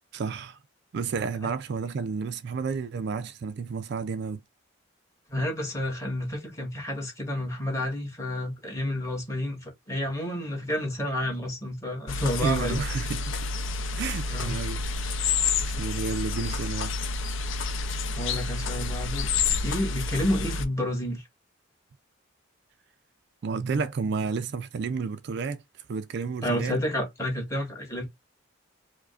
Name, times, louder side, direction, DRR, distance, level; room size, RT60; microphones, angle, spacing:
voice 1, 0.1-0.6 0.9-4.4 12.4-13.3 14.0-14.8 15.2-17.0 23.4-25.6 25.9-26.8, right 5 dB, 55° right, 0.3 m, -31 dB
voice 2, 5.3-12.8 14.3-14.6 18.1-19.3 19.6-21.2 26.4-28.1, left 1 dB, 15° left, 1.5 m, -30 dB
sound 1, 12.1-20.7, left 4 dB, 65° left, 0.6 m, -29 dB
4.8 x 2.1 x 2.4 m
head